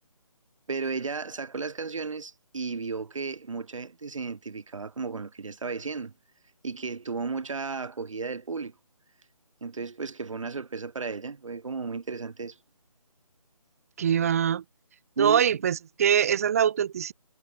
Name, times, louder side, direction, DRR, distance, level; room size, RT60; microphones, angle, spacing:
voice 1, 0.7-6.1 6.6-8.7 9.6-12.6 15.2-15.4, right 4 dB, 60° right, 3.9 m, -34 dB
voice 2, 14.0-14.6 15.2-17.1, right 8 dB, 25° right, 0.8 m, -23 dB
figure-of-eight pair, 160°, 19 cm